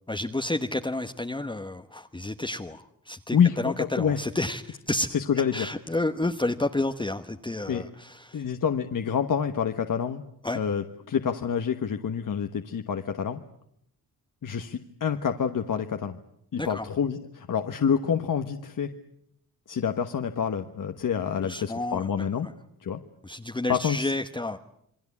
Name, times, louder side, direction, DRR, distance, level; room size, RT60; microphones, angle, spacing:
voice 1, 0.1-5.1 5.5-8.4 10.4-10.6 16.6-16.9 21.4-22.3 23.2-24.6, left 2 dB, 15° left, 5 dB, 1.0 m, -30 dB
voice 2, 3.3-4.2 5.1-5.7 7.7-7.8 8.3-10.2 10.5-13.4 14.4-16.2 16.5-18.9 19.7-22.5 22.8-23.0 23.7-24.1, left 7 dB, 65° left, 6 dB, 1.3 m, -27 dB
28.0 x 23.0 x 8.5 m, 0.74 s
wide cardioid pair, 120°, 35 cm